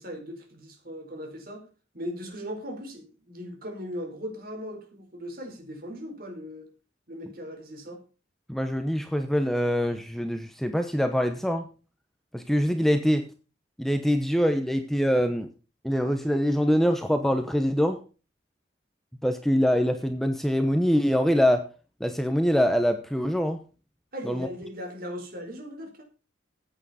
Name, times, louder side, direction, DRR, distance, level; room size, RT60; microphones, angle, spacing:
voice 1, 0.0-1.7 1.9-6.7 7.1-8.0 24.1-26.0, equal, 50° right, 3 dB, 4.3 m, -38 dB
voice 2, 8.5-11.7 12.3-13.3 13.8-15.5 15.8-18.0 19.2-21.6 22.0-23.6 24.3-24.5, equal, ahead, 7 dB, 0.9 m, -24 dB
14.5 x 9.0 x 4.2 m, 0.34 s
head